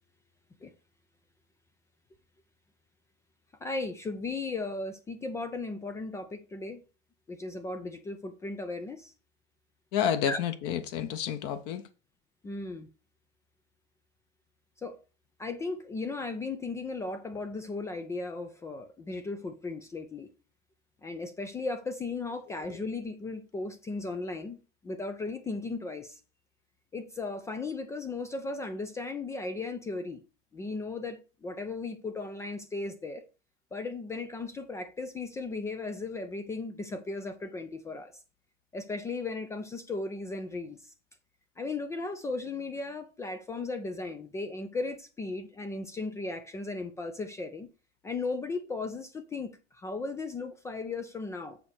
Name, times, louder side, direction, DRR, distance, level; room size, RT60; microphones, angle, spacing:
voice 1, 3.6-6.8 7.3-9.1 10.3-10.4 12.4-12.9 14.8-15.0 15.4-20.3 21.0-26.2 26.9-30.2 30.5-33.2 33.7-38.1 38.7-40.8 41.6-47.7 48.0-51.7, left 3 dB, 10° left, 0.3 m, -36 dB
voice 2, 9.9-11.8 22.7-22.8, left 9 dB, 40° left, 1.0 m, -30 dB
6.9 x 4.3 x 6.4 m
hypercardioid pair, 110°, 38 cm